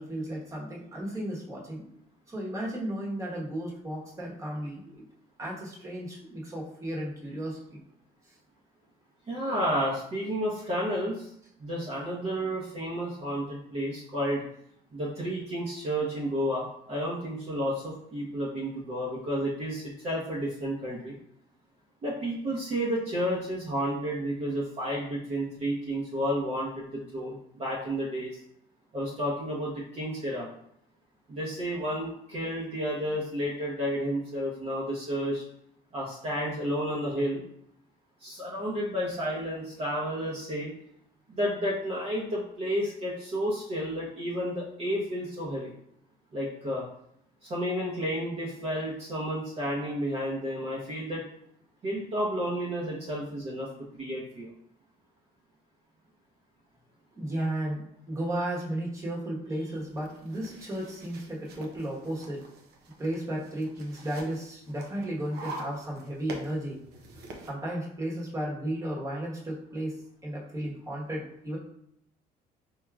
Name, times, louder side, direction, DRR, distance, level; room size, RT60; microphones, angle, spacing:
voice 1, 0.0-1.9 2.3-5.0 5.4-7.8 57.1-62.4 63.0-66.8 67.4-70.0 70.2-71.6, right 1 dB, 20° right, -4 dB, 1.1 m, -34 dB
voice 2, 9.3-11.3 11.6-14.4 14.9-21.2 22.0-28.3 28.9-30.5 31.3-35.4 35.9-37.4 38.2-40.7 41.3-45.7 46.3-46.8 47.4-51.2 51.8-53.7 53.9-54.5, equal, 40° right, -5 dB, 0.8 m, -31 dB
sound 1, 59.8-67.5, right 2 dB, 75° right, 0.6 m, -45 dB
4.6 x 2.8 x 2.3 m, 0.72 s
cardioid pair, 110°, 17 cm